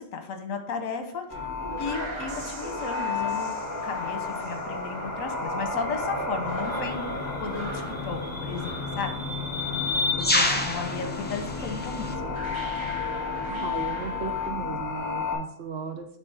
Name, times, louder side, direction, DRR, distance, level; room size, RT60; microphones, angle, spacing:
voice 1, 0.0-1.4 1.8-3.5 3.8-9.3 10.2-12.2, left 5 dB, 85° left, 6 dB, 1.3 m, -34 dB
sound 1, 1.3-15.4, left 4 dB, 35° left, 1.1 m, -32 dB
sound 2, 1.3-10.2 10.5-10.9 11.7-11.8 12.1-14.5, right 2 dB, 30° right, 0.6 m, -41 dB
sound 3, 6.7-6.9 7.9-12.1, left 2 dB, 15° left, 0.4 m, -29 dB
voice 2, 13.5-16.2, right 6 dB, 60° right, 6 dB, 0.9 m, -36 dB
9.8 x 3.3 x 3.4 m, 0.68 s
omnidirectional pair, 1.4 m